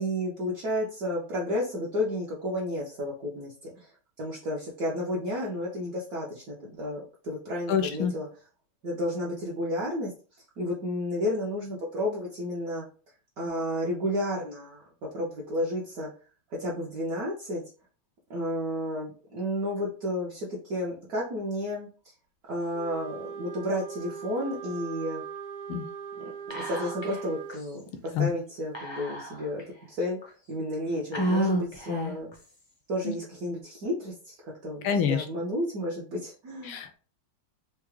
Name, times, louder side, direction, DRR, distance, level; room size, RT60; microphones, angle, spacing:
voice 1, 0.0-3.9 4.2-8.3 8.8-10.1 10.6-12.8 13.4-14.8 15.1-16.1 16.5-17.6 18.3-21.9 22.5-25.2 26.2-32.3 32.9-36.8, left 1 dB, 60° right, -4 dB, 1.0 m, -32 dB
voice 2, 7.7-8.1 25.7-25.9 28.1-28.3 34.8-35.2 36.7-37.0, left 8 dB, 85° left, 6 dB, 1.5 m, -26 dB
Wind instrument woodwind instrument, 22.7-27.6, right 7 dB, 85° right, 1.6 m, -40 dB
Whispering, 26.5-27.2 27.5-27.6 28.7-29.6 30.2-30.3 31.1-32.3, equal, 40° left, 0.3 m, -29 dB
4.6 x 2.1 x 3.1 m, 0.38 s
omnidirectional pair, 2.3 m